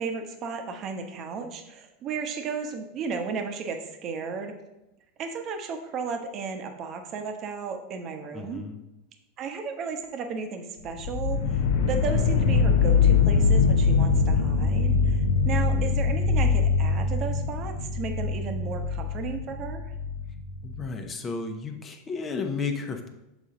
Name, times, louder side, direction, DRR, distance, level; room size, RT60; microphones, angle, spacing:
voice 1, 0.0-4.5 5.2-8.6 9.4-19.9, right 5 dB, 40° right, 5 dB, 0.9 m, -34 dB
voice 2, 8.3-8.8 15.7-16.0 20.6-23.1, left 4 dB, 25° left, 5 dB, 0.9 m, -33 dB
sound 1, 11.0-20.9, left 5 dB, 65° left, 0.6 m, -23 dB
7.1 x 4.1 x 3.8 m, 0.95 s
hypercardioid pair, 95°, 0 cm